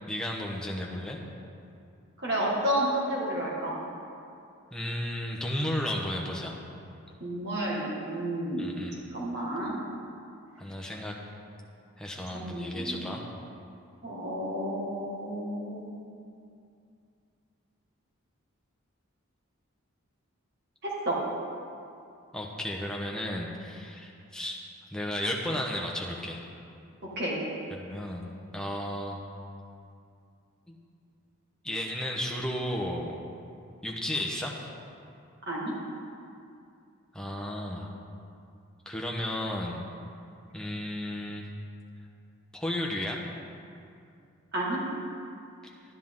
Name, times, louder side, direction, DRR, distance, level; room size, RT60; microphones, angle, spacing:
voice 1, 0.1-1.2 4.7-6.6 8.6-9.1 10.6-11.1 12.0-13.2 22.3-24.6 24.9-26.4 27.7-29.2 30.7-30.8 31.6-33.2 33.8-34.7 37.1-37.9 38.9-39.8 40.5-41.5 42.5-43.2 45.6-45.7, left 1 dB, 5° left, -1 dB, 1.0 m, -33 dB
voice 2, 2.2-3.8 7.2-8.7 9.1-9.8 12.3-13.0 14.0-16.0 20.8-21.2 27.2-27.4 35.5-35.7 44.5-44.8, right 1 dB, 50° right, -4 dB, 1.9 m, -31 dB
12.0 x 10.0 x 3.8 m, 2.5 s
head